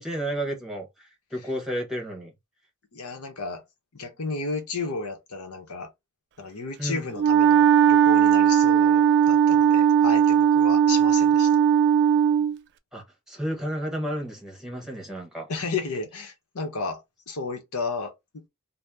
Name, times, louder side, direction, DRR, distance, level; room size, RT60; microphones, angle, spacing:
voice 1, 0.0-2.3 6.8-7.0 12.9-15.5, right 1 dB, 5° right, 1.0 m, -32 dB
voice 2, 2.9-3.6 3.9-5.9 6.4-11.6 15.5-18.4, left 3 dB, 80° left, 0.9 m, -33 dB
Wind instrument woodwind instrument, 7.2-12.6, right 8 dB, 50° right, 0.3 m, -18 dB
2.8 x 2.1 x 3.3 m
head